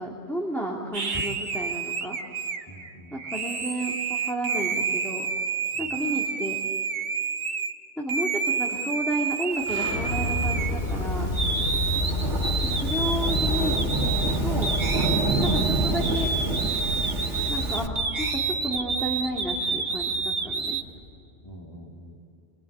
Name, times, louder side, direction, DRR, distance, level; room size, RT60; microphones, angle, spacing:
voice 1, 0.0-2.2 3.1-5.3 5.8-6.6 8.0-11.3 12.6-14.2 14.4-14.7 15.4-16.3 17.5-20.8, right 1 dB, ahead, -2 dB, 2.7 m, -32 dB
sound 1, 0.9-7.7 8.1-11.0 11.3-20.8, right 5 dB, 45° right, 1.3 m, -29 dB
voice 2, 2.7-3.2 5.7-6.0 11.6-12.0 21.4-22.2, equal, 20° left, -6 dB, 3.9 m, -45 dB
sound 2, 9.7-21.5, left 2 dB, 60° left, 2.8 m, -30 dB
Thunderstorm / Rain, 10.2-17.9, right 3 dB, 80° right, 2.5 m, -30 dB
28.5 x 24.0 x 8.8 m, 2.5 s
omnidirectional pair, 1.2 m